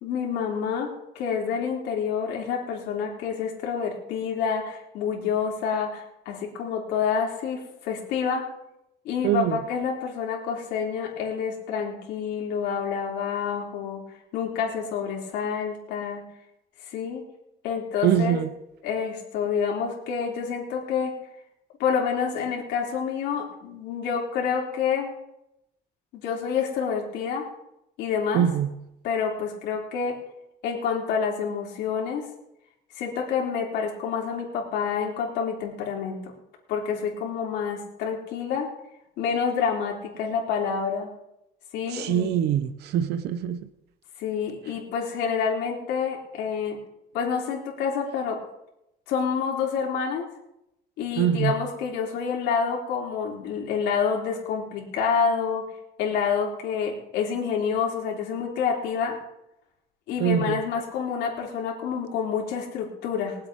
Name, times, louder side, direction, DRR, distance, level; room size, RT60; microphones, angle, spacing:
voice 1, 0.0-8.5 9.1-14.0 14.3-16.2 16.9-17.2 17.6-18.4 18.8-21.2 21.8-25.1 26.1-27.5 28.0-28.5 29.0-30.2 30.6-32.2 33.0-36.3 36.7-38.7 39.2-41.1 41.7-42.3 44.2-46.8 47.1-48.4 49.1-50.3 51.0-55.6 56.0-59.2 60.1-63.4, left 6 dB, 85° left, -1 dB, 3.5 m, -28 dB
voice 2, 9.2-9.6 18.0-18.5 28.3-28.7 41.9-43.6 51.2-51.5 60.2-60.6, right 9 dB, 75° right, 12 dB, 0.8 m, -23 dB
23.0 x 7.9 x 3.7 m, 0.85 s
cardioid pair, 110°, 17 cm